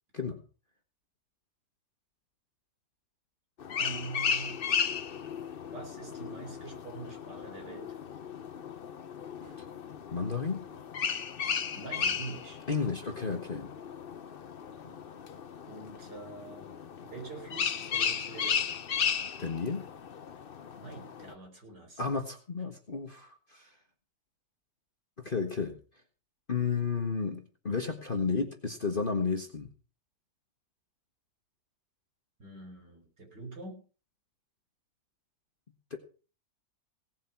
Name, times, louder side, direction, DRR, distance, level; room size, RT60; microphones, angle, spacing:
sound 1, 3.6-21.3, left 7 dB, 65° left, 0.5 m, -35 dB
voice 1, 3.8-4.5 5.7-8.0 11.6-12.6 15.7-16.8 17.0-18.7 20.7-22.0 32.4-33.8, right 3 dB, 60° right, 1 dB, 5.4 m, -44 dB
sound 2, 6.2-6.6 7.7-8.1 8.5-8.6 9.2-9.8 10.7-11.3 12.0-12.5 13.4-13.9 14.4-14.5 14.8-15.3, right 2 dB, 25° right, 4.1 m, -57 dB
voice 2, 10.1-10.6 12.7-13.7 19.4-19.9 22.0-23.7 25.2-25.8 26.5-29.7 35.9-36.0, left 5 dB, 30° left, 4 dB, 1.5 m, -32 dB
18.0 x 7.5 x 5.9 m, 0.37 s
omnidirectional pair, 2.0 m